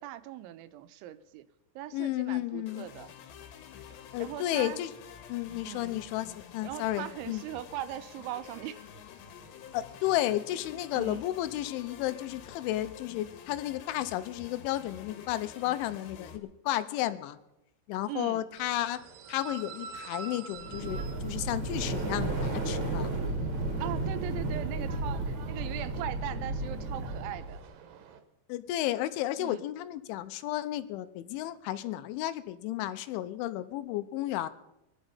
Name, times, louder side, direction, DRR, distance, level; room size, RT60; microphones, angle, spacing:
voice 1, 0.0-1.5 1.8-3.1 4.2-4.8 5.6-5.9 6.6-8.8 10.9-11.2 18.1-18.5 23.8-27.6 29.4-29.6, right 13 dB, 85° right, 13 dB, 3.1 m, -40 dB
voice 2, 1.9-2.9 4.1-4.9 5.3-7.4 9.7-17.4 17.9-19.0 19.3-23.1 28.5-34.5, left 14 dB, 85° left, 13 dB, 3.2 m, -33 dB
sound 1, 2.7-16.4, left 8 dB, 70° left, 3.4 m, -49 dB
sound 2, 18.6-28.2, right 5 dB, 65° right, 2.3 m, -48 dB
sound 3, 20.6-27.6, right 2 dB, 45° right, 1.5 m, -33 dB
21.5 x 11.5 x 5.6 m, 0.89 s
omnidirectional pair, 5.4 m